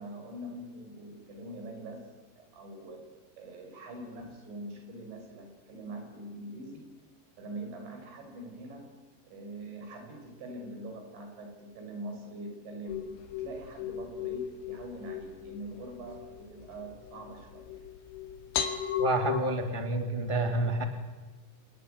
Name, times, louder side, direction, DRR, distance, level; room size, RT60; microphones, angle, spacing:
voice 1, 0.0-6.9 7.4-8.9 9.3-17.8, right 1 dB, 65° right, 4 dB, 8.4 m, -43 dB
sound 1, 12.9-19.4, left 8 dB, 70° left, 4.2 m, -36 dB
voice 2, 19.0-20.8, right 2 dB, 45° left, 5 dB, 0.3 m, -29 dB
28.5 x 20.0 x 9.5 m, 1.2 s
omnidirectional pair, 5.7 m